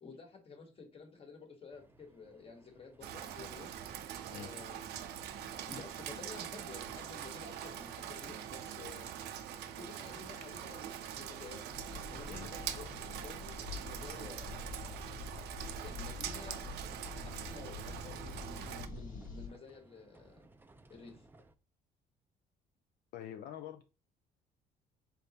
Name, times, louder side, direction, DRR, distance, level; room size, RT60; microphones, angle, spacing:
voice 1, 0.0-3.7 4.3-9.1 9.8-11.7 12.1-14.7 15.8-16.6 17.2-20.5 20.9-21.3, left 4 dB, 35° left, 1.3 m, -52 dB
sound 1, 1.7-21.5, right 2 dB, 10° right, 0.4 m, -61 dB
Rain, 3.0-18.9, right 10 dB, 75° right, 0.5 m, -44 dB
sound 2, 11.7-19.5, left 3 dB, 55° left, 1.1 m, -46 dB
voice 2, 23.1-23.8, left 10 dB, 70° left, 0.4 m, -45 dB
4.0 x 3.5 x 2.8 m
cardioid pair, 110°, 17 cm